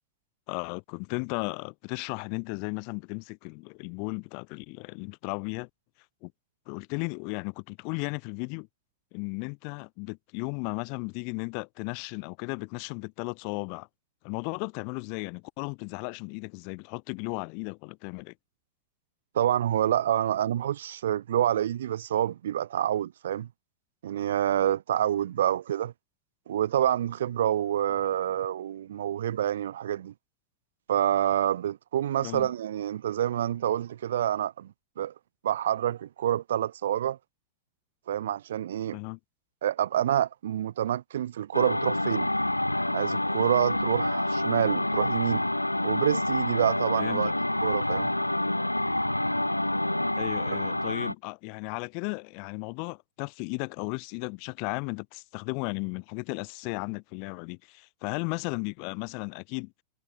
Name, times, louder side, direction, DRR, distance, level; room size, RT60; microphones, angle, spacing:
voice 1, 0.5-5.7 6.2-6.3 6.7-8.7 9.1-13.9 14.2-18.3 32.2-32.5 38.9-39.2 47.0-47.3 50.2-59.7, left 40 dB or more, 45° left, 3.1 m, -35 dB
voice 2, 19.3-23.5 24.0-25.9 26.5-30.1 30.9-35.1 35.4-37.2 38.1-39.0 39.6-42.3 42.9-45.4 45.8-47.3 47.6-48.1, right 11 dB, 60° right, 0.9 m, -27 dB
sound 1, 41.5-51.1, left 1 dB, 85° left, 2.6 m, -27 dB
figure-of-eight pair, 90°, 0 cm